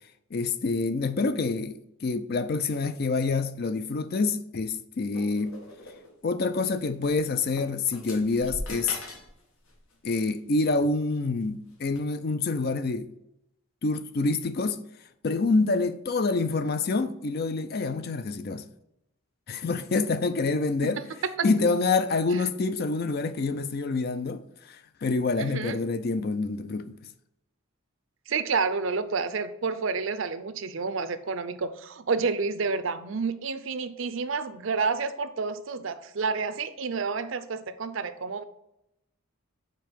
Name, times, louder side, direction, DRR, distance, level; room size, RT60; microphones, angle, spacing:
voice 1, 0.3-5.6 6.2-9.0 10.0-13.1 13.8-14.8 15.2-18.7 19.5-21.0 21.4-27.0, left 3 dB, 50° left, 0.4 m, -27 dB
sound 1, 5.1-6.1 7.0-7.1 7.5-9.3 9.6-9.9 10.8-11.1 11.9-12.0, left 2 dB, 80° left, 1.4 m, -40 dB
voice 2, 25.4-25.8 28.3-38.4, right 4 dB, 65° right, 0.5 m, -29 dB
5.2 x 4.4 x 5.9 m
head